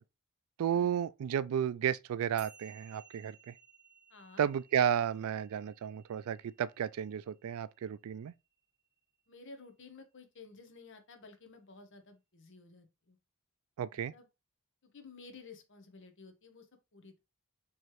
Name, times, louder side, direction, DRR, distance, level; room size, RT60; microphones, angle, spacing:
voice 1, 0.6-3.5 4.4-8.3 13.8-14.1, right 9 dB, 70° right, 0.3 m, -33 dB
sound 1, 2.4-8.9, right 5 dB, 50° right, 1.4 m, -60 dB
voice 2, 4.1-4.4 9.3-13.2 13.9-14.3 14.8-17.2, left 4 dB, 55° left, 0.9 m, -54 dB
4.7 x 3.2 x 3.0 m
head